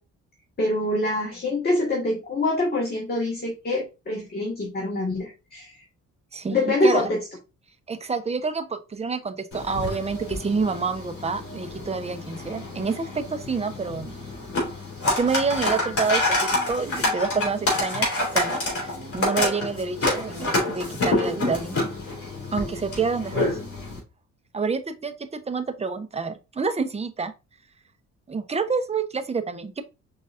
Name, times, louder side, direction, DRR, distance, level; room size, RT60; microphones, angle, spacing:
voice 1, 0.6-5.8 6.5-7.2, left 2 dB, 30° left, -1 dB, 1.7 m, -25 dB
voice 2, 6.3-7.1 7.9-14.1 15.2-18.1 18.3-21.9 22.5-23.5 24.5-27.3 28.3-29.8, right 4 dB, 20° right, 9 dB, 0.7 m, -28 dB
sound 1, 9.5-24.0, left 2 dB, 50° left, 2.9 m, -28 dB
5.3 x 4.0 x 2.5 m, 0.28 s
cardioid pair, 90°, 30 cm